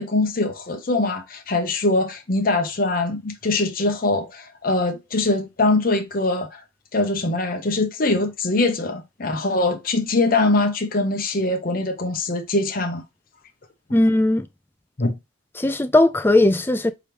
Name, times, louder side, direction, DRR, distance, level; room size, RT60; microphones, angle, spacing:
voice 1, 0.0-6.6 6.9-13.0 15.0-15.2, left 2 dB, 45° left, 0.8 m, -22 dB
voice 2, 13.9-14.5 15.6-16.9, left 1 dB, 10° left, 0.3 m, -18 dB
4.8 x 3.5 x 2.9 m
head